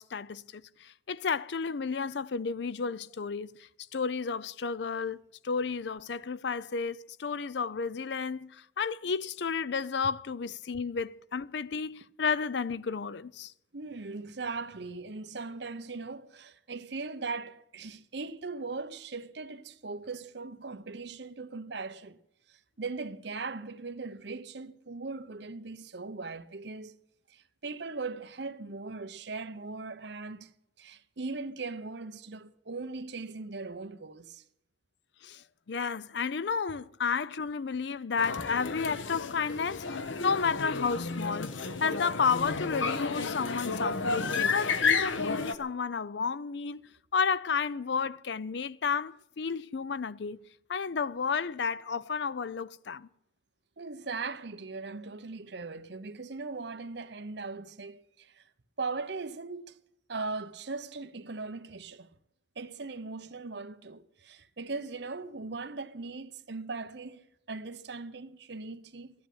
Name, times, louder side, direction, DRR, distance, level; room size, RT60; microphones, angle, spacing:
voice 1, 0.0-13.5 35.2-50.4 50.7-53.1, left 5 dB, 65° left, 0.5 m, -32 dB
voice 2, 13.7-22.2 22.5-27.0 27.3-30.5 30.8-34.4 53.8-58.4 58.8-59.8 60.1-62.1 62.6-69.1, right 3 dB, 60° right, 0.9 m, -39 dB
sound 1, 38.2-45.5, left 4 dB, 80° left, 1.0 m, -31 dB
13.5 x 10.5 x 9.3 m
head